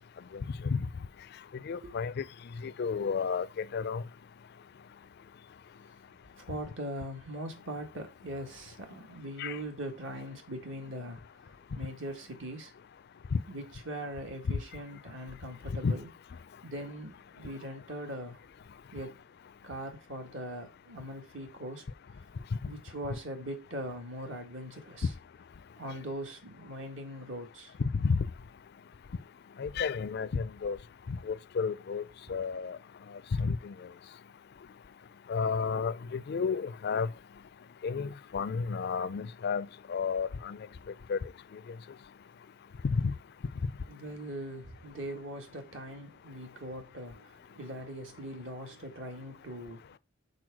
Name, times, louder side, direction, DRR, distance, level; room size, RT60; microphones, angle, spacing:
voice 1, 1.7-2.2 2.6-4.0 9.4-9.6 15.8-15.9 28.0-28.2 29.6-30.8 31.1-32.0 32.3-32.8 33.4-33.7 35.3-37.1 37.8-40.6 41.1-41.2 42.8-43.1, left 5 dB, 55° left, 0.4 m, -31 dB
voice 2, 6.3-11.2 11.5-12.7 13.5-16.1 16.6-18.4 18.9-19.2 19.6-21.8 22.6-25.1 25.8-27.8 32.3-32.4 43.9-49.9, right 1 dB, 70° right, 1.8 m, -41 dB
6.2 x 4.3 x 6.2 m
head